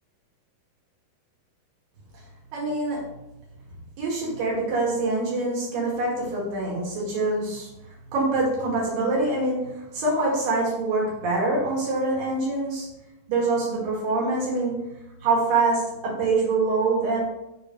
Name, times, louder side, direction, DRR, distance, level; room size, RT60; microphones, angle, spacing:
voice 1, 2.5-3.0 4.0-7.7 8.1-12.9 13.3-14.8 15.2-17.2, right 2 dB, 65° right, -4 dB, 3.2 m, -25 dB
6.3 x 3.9 x 5.1 m, 0.92 s
omnidirectional pair, 4.4 m